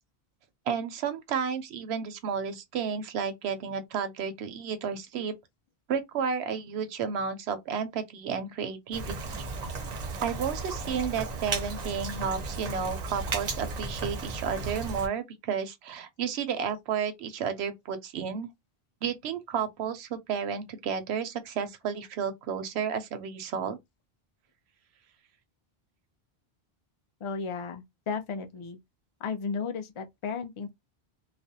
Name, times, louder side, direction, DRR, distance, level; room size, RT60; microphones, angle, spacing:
voice 1, 0.7-5.3 5.9-9.5 10.2-18.5 19.0-23.8, right 7 dB, 90° right, 0.9 m, -32 dB
Rain, 8.9-15.1, right 3 dB, 50° right, 0.6 m, -35 dB
voice 2, 27.2-28.8 29.2-30.7, left 5 dB, 45° left, 0.4 m, -34 dB
2.4 x 2.1 x 2.6 m
omnidirectional pair, 1.0 m